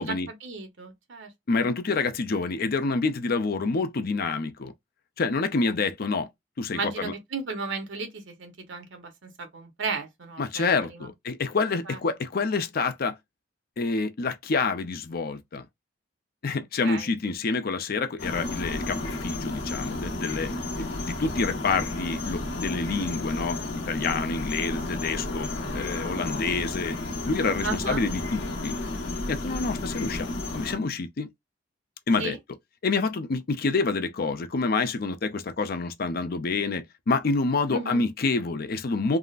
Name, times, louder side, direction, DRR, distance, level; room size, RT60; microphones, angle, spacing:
voice 1, 0.4-1.7 6.7-11.1 11.9-12.0 16.8-17.1 27.6-28.0 32.2-32.4 37.7-38.0, right 4 dB, 80° right, 0.9 m, -35 dB
voice 2, 1.5-4.7 5.2-6.3 6.6-7.1 10.4-13.2 13.8-15.6 16.4-20.5 20.8-23.6 23.9-27.0 27.3-28.8 29.3-31.3 32.1-32.4 32.8-39.2, left 4 dB, 55° left, 0.5 m, -27 dB
sound 1, 18.2-30.8, left 2 dB, 85° left, 1.0 m, -32 dB
3.6 x 2.1 x 2.4 m
head